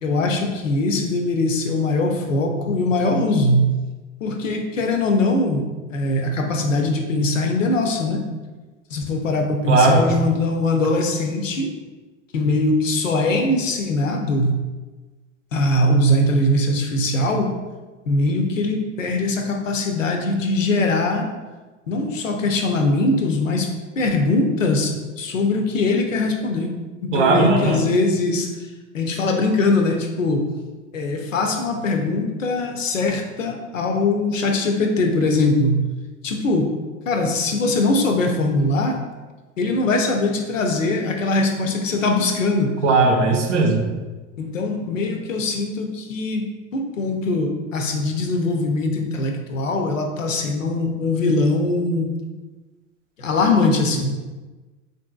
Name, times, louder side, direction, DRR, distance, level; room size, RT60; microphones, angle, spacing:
voice 1, 0.0-3.8 4.2-8.2 8.9-11.7 12.3-14.6 15.5-17.5 18.1-21.3 21.9-23.7 24.0-26.7 27.0-28.5 28.9-30.5 30.9-35.9 36.2-36.7 37.1-39.0 39.6-42.8 44.4-46.5 46.7-52.1 53.2-54.1, left 2 dB, 90° left, 4 dB, 0.5 m, -21 dB
voice 2, 9.7-10.0 27.1-27.8 42.8-43.8, right 3 dB, 70° right, 2 dB, 0.7 m, -17 dB
3.5 x 2.6 x 2.3 m, 1.3 s
figure-of-eight pair, 85°, 37 cm